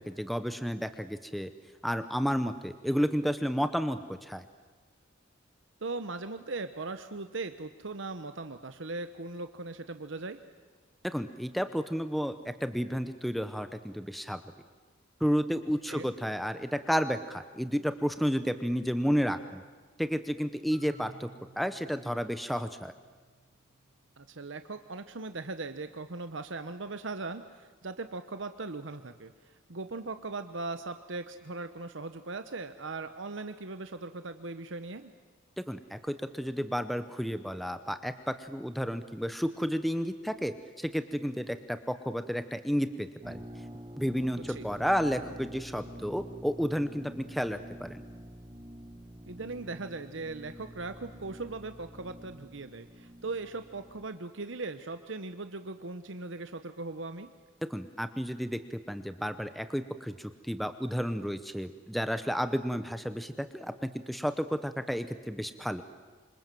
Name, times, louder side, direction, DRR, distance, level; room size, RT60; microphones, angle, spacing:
voice 1, 0.0-1.5 1.8-4.4 11.0-14.4 15.2-19.6 20.0-21.3 21.6-22.9 35.6-43.4 44.0-48.0 57.7-63.7 64.1-65.8, equal, ahead, 10 dB, 0.8 m, -31 dB
voice 2, 5.8-10.4 15.9-16.1 24.2-35.1 44.5-44.7 49.3-57.3, right 3 dB, 65° right, 9 dB, 1.0 m, -39 dB
Marimba xylophone, 20.7-24.6, right 2 dB, 75° left, 8.0 m, -57 dB
sound 1, 43.2-54.1, equal, 20° right, 1.4 m, -47 dB
27.0 x 26.0 x 7.7 m, 1.4 s
head